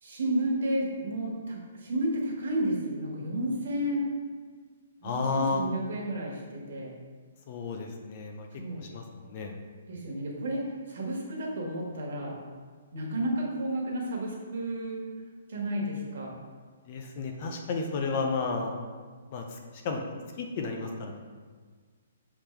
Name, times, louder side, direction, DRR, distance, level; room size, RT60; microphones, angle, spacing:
voice 1, 0.0-4.1 5.0-6.9 8.6-8.8 9.9-12.4 12.9-15.0 15.5-16.3, right 1 dB, 55° right, -2 dB, 1.5 m, -31 dB
voice 2, 5.0-5.6 7.5-8.5 8.9-9.6 16.9-18.7 19.3-19.6 19.8-20.0 20.4-21.2, left 4 dB, 30° left, 3 dB, 0.5 m, -32 dB
6.7 x 3.7 x 4.4 m, 1.5 s
hypercardioid pair, 175°, 0 cm